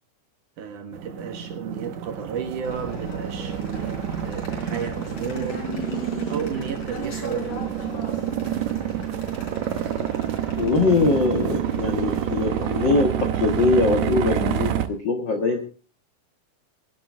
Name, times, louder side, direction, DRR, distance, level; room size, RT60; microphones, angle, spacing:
voice 1, 0.6-5.7 6.3-7.9, right 7 dB, 60° right, 2.6 m, -33 dB
sound 1, 0.9-14.9, right 10 dB, 90° right, 1.6 m, -28 dB
sound 2, 2.6-14.7, left 2 dB, 45° left, 4.9 m, -38 dB
voice 2, 10.6-15.6, left 3 dB, 60° left, 1.1 m, -22 dB
22.0 x 11.0 x 3.5 m
omnidirectional pair, 4.7 m